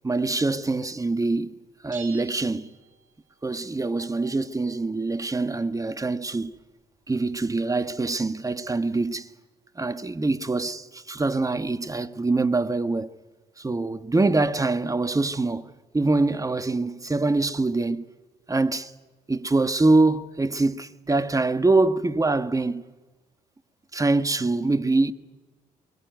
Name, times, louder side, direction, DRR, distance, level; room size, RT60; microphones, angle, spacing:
voice 1, 0.0-1.6 1.8-2.7 3.4-6.5 7.1-9.3 9.8-13.1 13.6-18.0 18.5-18.9 19.3-22.8 23.9-25.1, right 3 dB, 20° right, 1.5 m, -24 dB
sound 1, 1.9-3.5, right 6 dB, 55° right, 6.3 m, -46 dB
23.5 x 22.5 x 9.4 m
supercardioid pair, 60°, 16 cm